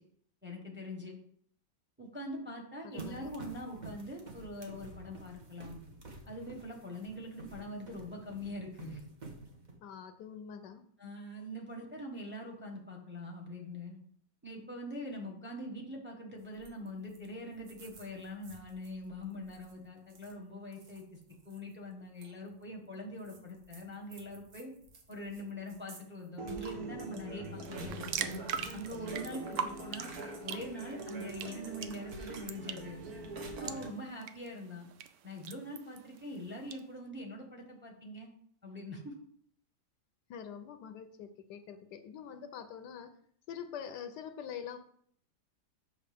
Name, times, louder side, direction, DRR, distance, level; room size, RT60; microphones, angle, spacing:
voice 1, 0.4-1.2 2.0-5.8 6.2-9.0 11.0-14.0 14.4-21.2 21.4-24.7 25.1-28.3 28.7-30.1 30.4-33.0 33.6-34.9 35.2-38.3 38.6-39.1, left 1 dB, 10° right, 1 dB, 1.0 m, -43 dB
voice 2, 2.8-3.3 9.8-10.8 40.3-43.1 43.5-44.8, left 8 dB, 75° left, 9 dB, 1.2 m, -45 dB
sound 1, 3.0-9.7, right 2 dB, 30° right, 0.9 m, -50 dB
sound 2, 16.6-16.9 17.1-17.3 17.5-18.9 19.4-19.7 20.1-20.3 20.7-21.6 22.2-22.3 23.3-25.4 25.7-26.0 26.4-33.9, right 3 dB, 60° right, 1.5 m, -44 dB
sound 3, 27.6-36.8, right 8 dB, 85° right, 0.6 m, -43 dB
7.5 x 6.1 x 3.5 m, 0.63 s
omnidirectional pair, 1.9 m